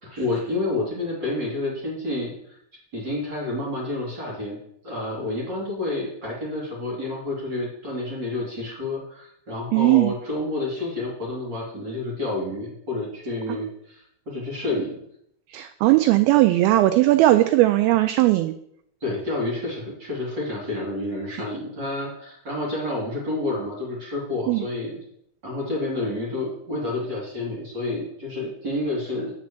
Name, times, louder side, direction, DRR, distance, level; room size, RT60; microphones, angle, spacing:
voice 1, 0.0-2.6 2.9-4.6 4.8-15.0 19.0-25.0 25.4-29.3, left 2 dB, 30° right, -3 dB, 2.6 m, -29 dB
voice 2, 9.7-10.1 15.5-18.5 24.5-24.6, right 17 dB, 85° right, 9 dB, 2.2 m, -18 dB
8.5 x 5.2 x 7.2 m, 0.71 s
omnidirectional pair, 4.7 m